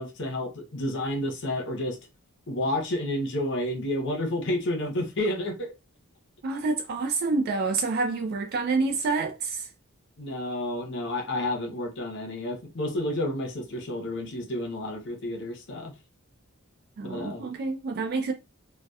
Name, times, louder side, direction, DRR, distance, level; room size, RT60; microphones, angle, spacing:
voice 1, 0.0-2.0 2.5-5.7 10.2-15.9 17.0-17.5, left 1 dB, 60° left, 0.7 m, -30 dB
voice 2, 6.4-9.7 17.0-18.3, right 3 dB, 50° right, 0.3 m, -28 dB
2.7 x 2.1 x 2.2 m
head